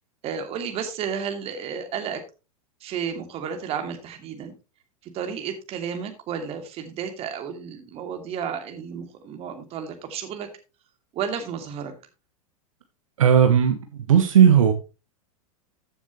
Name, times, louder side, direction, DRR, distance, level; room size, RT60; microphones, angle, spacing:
voice 1, 0.2-2.2 2.8-4.5 5.0-10.5 11.1-11.9, right 7 dB, 30° right, 6 dB, 2.6 m, -32 dB
voice 2, 13.2-13.8 14.1-14.7, right 8 dB, 65° right, 7 dB, 1.3 m, -15 dB
14.5 x 7.2 x 3.0 m, 0.30 s
figure-of-eight pair, 95°, 19 cm